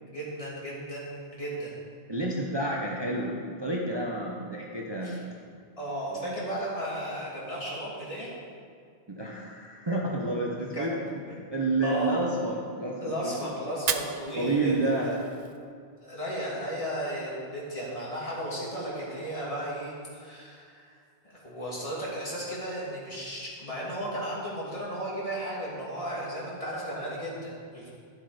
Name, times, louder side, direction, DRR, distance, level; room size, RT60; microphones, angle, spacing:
voice 1, 0.1-1.7 5.0-5.2 5.8-8.3 10.7-10.9 11.8-12.1 13.0-15.2 16.0-20.9 21.2-27.9, right 1 dB, 35° left, -6 dB, 2.7 m, -34 dB
voice 2, 2.1-5.2 6.1-6.4 9.1-11.0 11.5-13.5 14.4-15.1, right 2 dB, 25° right, -3 dB, 0.9 m, -30 dB
Fire, 13.7-15.7, right 7 dB, 50° right, 0.5 m, -35 dB
12.0 x 7.6 x 5.1 m, 2.2 s
omnidirectional pair, 1.1 m